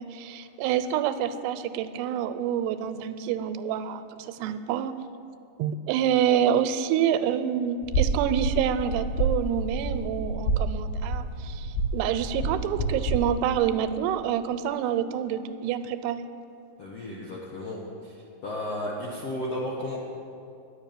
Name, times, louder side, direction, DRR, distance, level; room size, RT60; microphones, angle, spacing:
voice 1, 0.0-5.0 5.6-16.3, right 9 dB, 90° right, 10 dB, 2.7 m, -27 dB
sound 1, 7.8-13.2, right 2 dB, 85° left, 3.2 m, -28 dB
voice 2, 16.8-18.2 18.4-20.0, left 1 dB, 70° left, -4 dB, 1.5 m, -33 dB
11.0 x 7.2 x 9.0 m, 2.5 s
omnidirectional pair, 4.7 m